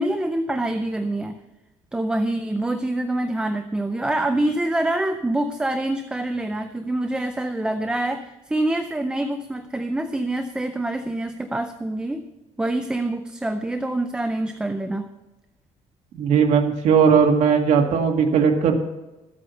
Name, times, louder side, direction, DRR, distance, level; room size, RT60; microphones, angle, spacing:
voice 1, 0.0-1.4 1.9-12.2 12.6-15.1, right 1 dB, 5° right, 7 dB, 0.5 m, -25 dB
voice 2, 16.1-18.8, right 6 dB, 65° right, 2 dB, 1.9 m, -18 dB
13.5 x 8.5 x 5.7 m, 1.0 s
cardioid pair, 180°, 13 cm